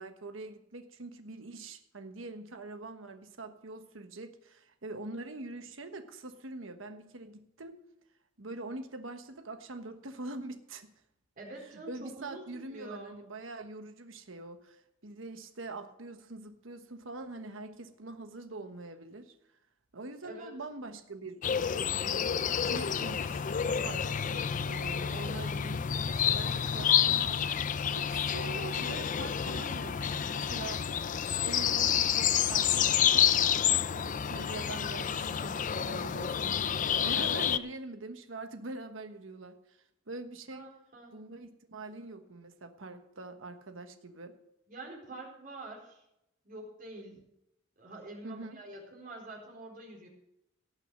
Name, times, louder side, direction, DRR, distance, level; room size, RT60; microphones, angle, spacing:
voice 1, 0.0-7.7 8.4-10.9 11.7-19.3 19.9-30.8 31.4-39.8 40.1-40.6 41.1-44.3 48.2-48.6, right 2 dB, 80° right, 8 dB, 1.3 m, -44 dB
voice 2, 11.4-13.2 20.2-20.5 40.5-41.1 44.7-46.0 46.4-47.2 47.8-50.1, right 2 dB, 45° right, -1 dB, 4.2 m, -46 dB
sound 1, 21.4-37.6, left 9 dB, 40° left, 0.5 m, -29 dB
17.5 x 6.4 x 6.6 m, 0.83 s
head